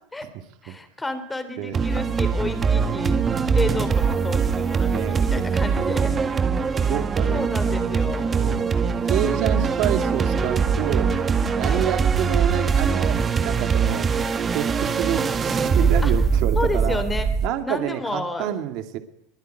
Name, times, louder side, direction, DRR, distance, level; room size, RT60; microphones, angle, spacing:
voice 1, 0.6-6.4 7.3-8.3 11.5-11.9 16.0-16.1 16.5-17.3 17.6-18.6, left 2 dB, 5° left, 10 dB, 3.4 m, -31 dB
sound 1, 1.7-17.5, right 5 dB, 15° right, 1.7 m, -22 dB
voice 2, 4.9-5.3 5.7-7.4 8.4-8.7 9.1-11.1 11.6-14.1 14.5-17.0 17.4-19.0, right 11 dB, 45° right, 8 dB, 2.5 m, -28 dB
23.5 x 23.0 x 9.3 m, 0.70 s
supercardioid pair, 165°, 0 cm